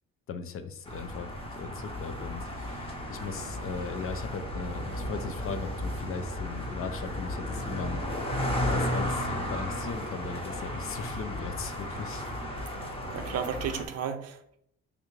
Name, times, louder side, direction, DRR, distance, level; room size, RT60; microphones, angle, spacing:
voice 1, 0.3-8.0 8.7-12.2, left 5 dB, 50° left, 9 dB, 0.4 m, -38 dB
sound 1, 0.9-13.9, left 1 dB, 20° left, 0.7 m, -34 dB
voice 2, 13.1-14.6, right 7 dB, 55° right, 7 dB, 0.5 m, -34 dB
3.4 x 2.4 x 3.1 m, 0.70 s
cardioid pair, 90°, 30 cm